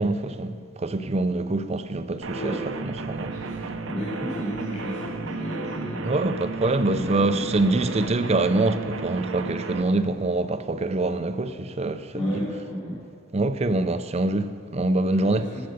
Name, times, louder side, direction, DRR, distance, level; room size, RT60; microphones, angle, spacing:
voice 1, 0.0-3.8 6.0-12.4 13.3-15.6, right 2 dB, 30° right, 0.5 m, -25 dB
sound 1, 2.2-9.8, right 3 dB, 85° right, 0.8 m, -34 dB
voice 2, 3.4-6.2 6.9-7.7 12.1-13.0 15.3-15.6, equal, 35° left, 3.5 m, -32 dB
12.0 x 7.9 x 7.8 m
head